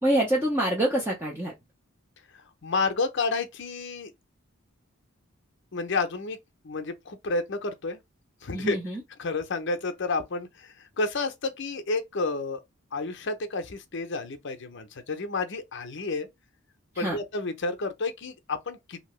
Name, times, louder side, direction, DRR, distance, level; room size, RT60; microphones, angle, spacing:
voice 1, 0.0-1.5 8.5-9.0 16.9-17.2, right 1 dB, 10° right, 0.6 m, -26 dB
voice 2, 2.3-4.1 5.7-6.4 6.6-8.0 8.4-8.8 9.2-12.6 12.9-16.3 17.0-19.0, left 3 dB, 55° left, 0.6 m, -30 dB
2.8 x 2.7 x 3.0 m
head